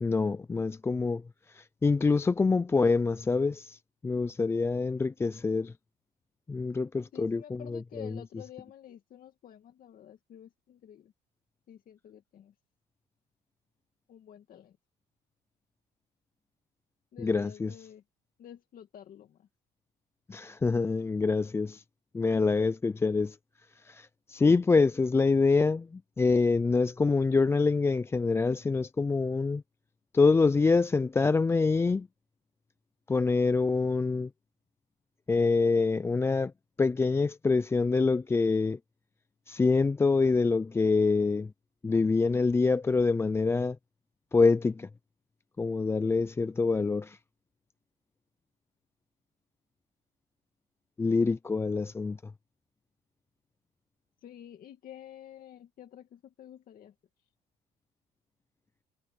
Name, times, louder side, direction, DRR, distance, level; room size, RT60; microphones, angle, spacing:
voice 1, 0.0-1.2 1.5-5.7 6.5-8.2 17.2-17.7 20.3-21.8 22.1-23.4 23.8-29.6 30.1-32.1 33.1-34.3 35.3-36.5 36.8-38.8 39.5-41.5 41.8-43.8 44.3-44.9 45.6-47.2 51.0-52.2, left 4 dB, 15° left, 0.4 m, -26 dB
voice 2, 7.1-11.1 11.7-12.5 14.1-14.8 17.1-18.0 18.4-19.5 54.2-56.9, left 10 dB, 55° left, 2.2 m, -50 dB
cardioid pair, 110°, 17 cm